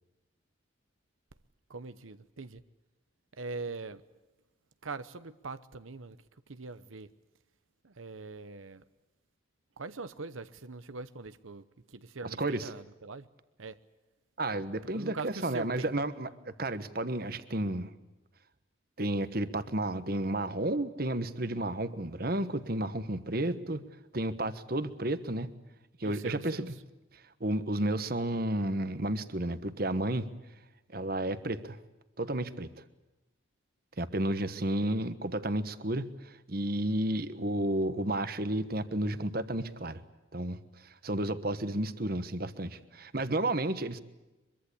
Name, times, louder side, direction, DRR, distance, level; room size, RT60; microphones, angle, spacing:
voice 1, 1.7-2.6 3.4-4.0 4.8-6.2 6.5-7.1 7.8-8.8 9.8-13.3 13.6-13.8 14.9-15.9 26.0-26.6, right 3 dB, 90° right, 0.9 m, -42 dB
voice 2, 12.2-12.7 14.4-17.9 19.0-23.8 24.1-25.5 26.0-26.7 27.4-30.3 30.9-31.8 32.2-32.7 34.0-40.0 40.3-40.6 41.0-44.0, right 1 dB, 50° right, 1.3 m, -32 dB
24.5 x 23.5 x 8.4 m
head